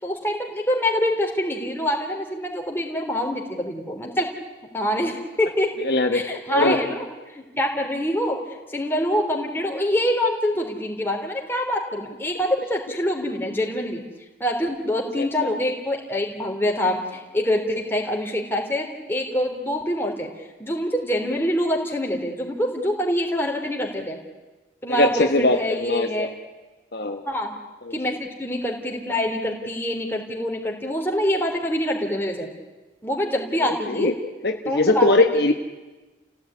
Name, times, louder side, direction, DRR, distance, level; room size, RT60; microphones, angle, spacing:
voice 1, 0.0-4.3 4.7-5.7 6.1-7.0 7.3-8.4 8.7-14.0 14.4-20.3 20.6-24.2 24.8-26.3 27.3-27.6 27.9-32.5 33.0-34.1 34.6-35.1 35.5-35.6, equal, 10° left, 1 dB, 3.5 m, -25 dB
voice 2, 5.8-6.2 6.5-6.8 15.2-15.6 24.9-26.3 26.9-27.2 27.9-28.0 33.6-34.1 34.4-35.5, left 2 dB, 55° left, 4 dB, 1.4 m, -21 dB
29.5 x 17.0 x 9.8 m, 1.2 s
head